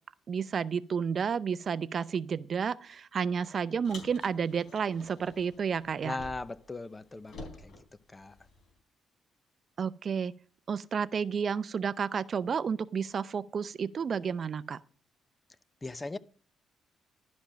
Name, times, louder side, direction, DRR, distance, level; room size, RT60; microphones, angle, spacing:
voice 1, 0.3-6.2 9.8-10.3 10.7-14.8, right 6 dB, 50° right, 0.5 m, -31 dB
Car, 3.8-6.7 6.9-8.7, left 2 dB, 65° left, 3.7 m, -49 dB
voice 2, 6.0-7.7 8.1-8.3 15.8-16.2, left 2 dB, 20° left, 0.6 m, -38 dB
11.5 x 5.3 x 7.4 m
cardioid pair, 90°, 0 cm